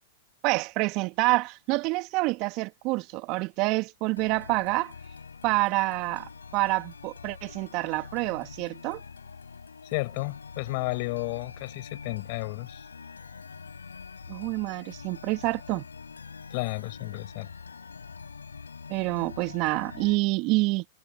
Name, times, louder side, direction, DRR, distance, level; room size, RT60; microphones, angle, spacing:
voice 1, 0.4-4.9 5.4-9.0 14.3-15.8 18.9-20.9, right 24 dB, 45° right, 2.2 m, -27 dB
sound 1, 4.2-20.2, left 5 dB, 85° left, 7.5 m, -45 dB
voice 2, 9.8-12.9 16.5-17.5, left 27 dB, 50° left, 6.6 m, -32 dB
hypercardioid pair, 105°, 0 cm